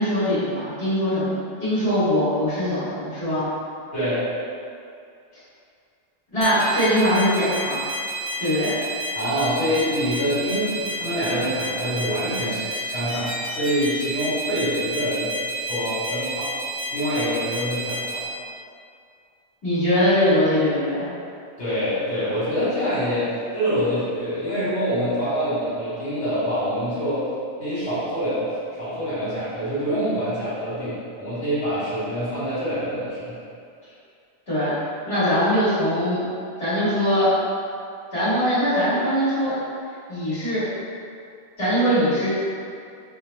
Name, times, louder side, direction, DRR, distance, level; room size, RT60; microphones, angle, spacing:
voice 1, 0.0-3.5 6.3-7.8 8.4-8.8 19.6-21.1 34.5-36.2 36.6-37.3 38.1-39.6 40.1-40.6 41.6-42.3, equal, 70° left, -15 dB, 1.9 m, -21 dB
voice 2, 3.9-4.2 9.1-15.3 15.6-16.5 16.9-18.2 21.6-27.3 27.6-33.4, equal, 85° left, -16 dB, 1.8 m, -25 dB
sound 1, 6.4-18.3, right 1 dB, 50° left, 1.2 m, -30 dB
5.0 x 2.0 x 3.3 m, 2.4 s
omnidirectional pair, 1.1 m